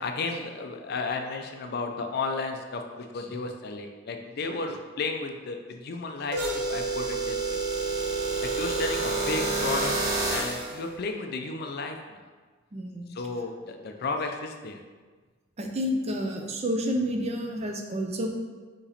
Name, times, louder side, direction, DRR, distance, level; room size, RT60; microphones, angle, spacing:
voice 1, 0.0-7.6 8.4-9.9 10.3-12.2 13.1-14.8, left 3 dB, 50° left, 4 dB, 0.4 m, -33 dB
sound 1, 6.3-10.7, right 3 dB, 50° right, 0.9 m, -28 dB
voice 2, 12.7-13.1 15.6-18.3, equal, 30° right, 2 dB, 0.4 m, -29 dB
4.0 x 2.9 x 4.1 m, 1.4 s
head